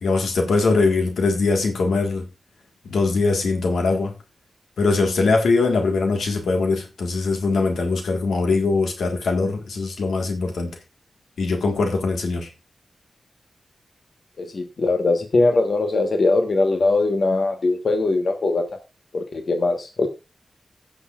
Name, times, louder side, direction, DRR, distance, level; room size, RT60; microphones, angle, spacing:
voice 1, 0.0-2.3 2.8-4.1 4.8-10.8 11.4-12.5, left 3 dB, 90° left, 1.5 m, -21 dB
voice 2, 14.4-18.6 19.1-20.1, left 3 dB, 70° left, 1.2 m, -21 dB
19.0 x 6.4 x 2.4 m
cardioid pair, 45°, 0 cm